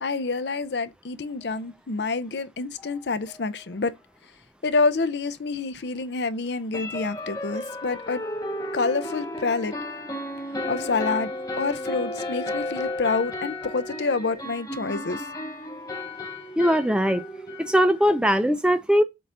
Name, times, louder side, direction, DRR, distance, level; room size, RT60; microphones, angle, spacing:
voice 1, 0.0-3.9 4.6-8.2 8.7-9.7 10.7-11.3 11.6-15.2, left 4 dB, 70° left, 0.6 m, -27 dB
sound 1, 2.8-2.9 3.3-3.4 3.7-3.8 6.7-18.2, left 1 dB, 20° left, 0.8 m, -33 dB
voice 2, 16.6-17.2 17.6-19.0, equal, 5° right, 0.5 m, -20 dB
7.6 x 2.6 x 5.5 m
head